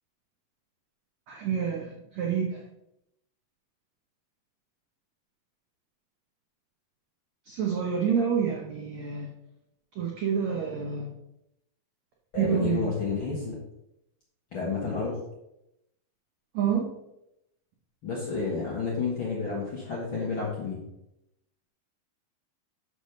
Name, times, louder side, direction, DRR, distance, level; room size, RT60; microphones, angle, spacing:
voice 1, 1.3-2.6 7.5-9.3 10.0-11.1 12.4-12.9 16.5-16.9, right 7 dB, 85° right, -1 dB, 1.5 m, -28 dB
voice 2, 12.3-13.6 14.5-15.2 18.0-20.8, left 4 dB, 50° left, -5 dB, 1.6 m, -30 dB
6.5 x 6.2 x 5.2 m, 0.84 s
omnidirectional pair, 4.6 m